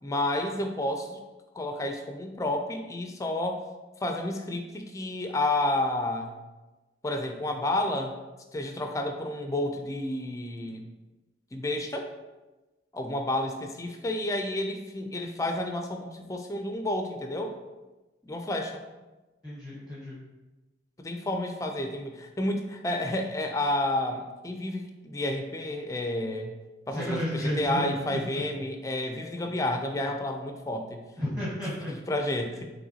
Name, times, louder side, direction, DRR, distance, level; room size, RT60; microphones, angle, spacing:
voice 1, 0.0-1.2 1.5-3.6 4.0-6.3 7.0-8.2 8.5-10.8 11.5-12.1 12.9-17.6 18.2-18.8 21.0-26.5 26.9-31.1 31.9-32.6, left 1 dB, 20° left, 4 dB, 0.4 m, -30 dB
voice 2, 19.4-20.2 26.9-28.4 31.2-31.9, equal, 5° right, -9 dB, 1.1 m, -32 dB
5.7 x 3.0 x 2.8 m, 1.1 s
head